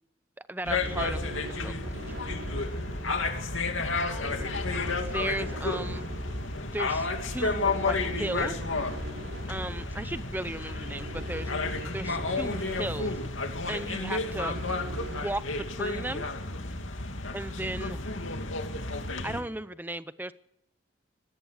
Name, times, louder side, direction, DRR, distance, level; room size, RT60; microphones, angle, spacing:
voice 1, 0.5-1.3 1.6-1.9 5.0-6.1 6.7-7.1 7.3-8.6 9.5-11.5 11.9-13.2 13.7-14.6 15.1-16.3 17.3-18.0 19.2-20.3, right 1 dB, 10° right, 14 dB, 0.7 m, -35 dB
sound 1, 0.6-19.4, left 3 dB, 90° left, 2.7 m, -32 dB
sound 2, 0.7-15.2, equal, 80° right, 4.4 m, -41 dB
24.5 x 17.5 x 6.6 m, 0.81 s
head